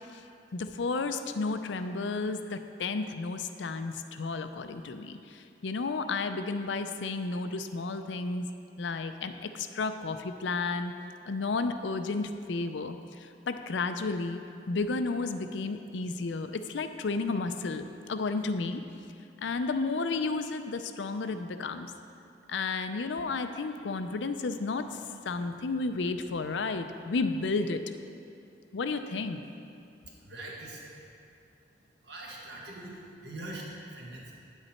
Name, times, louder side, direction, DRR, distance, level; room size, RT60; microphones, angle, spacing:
voice 1, 0.5-8.5 8.8-10.9 11.3-18.8 19.4-21.9 22.5-27.8 28.7-29.4, left 3 dB, 85° left, 9 dB, 0.5 m, -32 dB
voice 2, 30.2-30.9 32.0-34.3, right 1 dB, 65° right, -3 dB, 1.7 m, -43 dB
9.3 x 8.0 x 4.3 m, 2.6 s
head